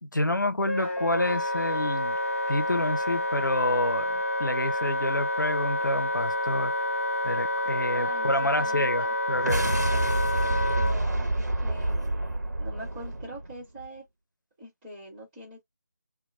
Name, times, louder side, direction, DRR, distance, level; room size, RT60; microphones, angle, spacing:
voice 1, 0.0-2.2 2.5-6.7 7.2-9.7, left 1 dB, 80° left, 0.8 m, -28 dB
Wind instrument woodwind instrument, 0.7-11.0, left 1 dB, 45° left, 0.7 m, -28 dB
voice 2, 7.9-9.1 9.8-10.0 10.3-14.0 14.6-15.6, equal, 10° right, 1.2 m, -44 dB
sound 1, 9.3-13.9, right 1 dB, 65° right, 1.0 m, -28 dB
2.8 x 2.2 x 2.6 m
figure-of-eight pair, 160°, 10 cm